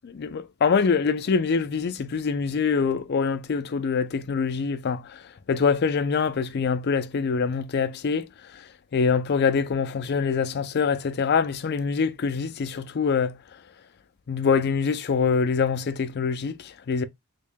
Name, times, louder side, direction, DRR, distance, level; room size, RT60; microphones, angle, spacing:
voice 1, 0.1-5.0 5.5-8.3 8.9-13.3 14.3-17.0, left 5 dB, 50° left, 0.4 m, -24 dB
3.6 x 2.2 x 3.5 m
head